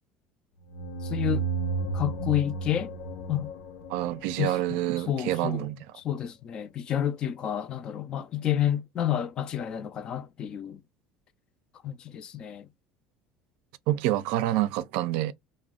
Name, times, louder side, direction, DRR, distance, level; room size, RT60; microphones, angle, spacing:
sound 1, 0.7-5.2, right 4 dB, 85° left, 1.0 m, -33 dB
voice 1, 1.0-1.4 1.9-2.9 3.3-3.5 4.4-4.8 5.1-5.7 6.0-10.8 11.8-12.7, left 10 dB, 35° left, 0.3 m, -30 dB
voice 2, 3.9-5.8 13.9-15.3, right 14 dB, 70° right, 0.3 m, -27 dB
2.4 x 2.1 x 3.5 m
cardioid pair, 140°, 2 cm